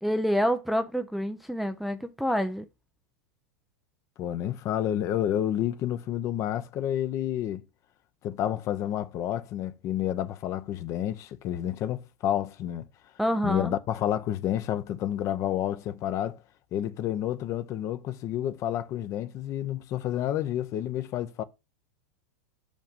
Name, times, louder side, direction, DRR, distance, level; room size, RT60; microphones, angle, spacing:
voice 1, 0.0-2.7 13.2-13.7, equal, ahead, 0.5 m, -27 dB
voice 2, 4.2-7.6 8.2-12.9 13.4-16.4 16.7-21.4, left 11 dB, 35° left, 0.8 m, -30 dB
6.4 x 5.2 x 5.2 m
supercardioid pair, 135°, 9 cm